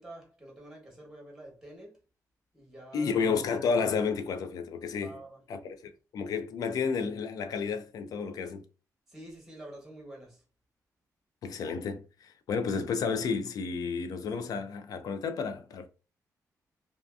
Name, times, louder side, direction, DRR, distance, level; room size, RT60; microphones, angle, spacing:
voice 1, 0.0-1.9 2.5-3.1 5.0-5.4 9.1-10.4, right 1 dB, 5° right, 1.0 m, -47 dB
voice 2, 2.9-5.2 5.5-8.6 11.4-15.9, left 5 dB, 75° left, 0.4 m, -31 dB
2.6 x 2.3 x 2.3 m
wide cardioid pair, 140°, 6 cm